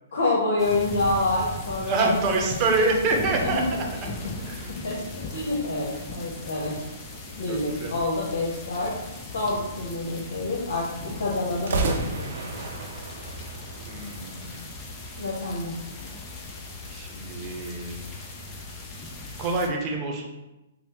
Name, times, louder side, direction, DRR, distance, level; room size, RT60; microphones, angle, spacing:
voice 1, 0.1-2.1 3.4-3.6 4.8-5.0 5.3-6.7 7.4-8.9 9.3-12.3 15.2-15.8, left 2 dB, 75° left, -4 dB, 0.9 m, -27 dB
sound 1, 0.6-19.7, left 2 dB, 25° left, 0.6 m, -38 dB
voice 2, 1.9-3.6 4.5-4.7 7.5-7.9 13.9-14.8 16.9-18.1 19.4-20.3, right 3 dB, 30° right, 0 dB, 0.8 m, -26 dB
sound 2, 5.7-7.5 11.5-14.7, right 3 dB, 65° right, 0.6 m, -33 dB
5.1 x 2.0 x 3.0 m, 0.99 s
hypercardioid pair, 130°, 0 cm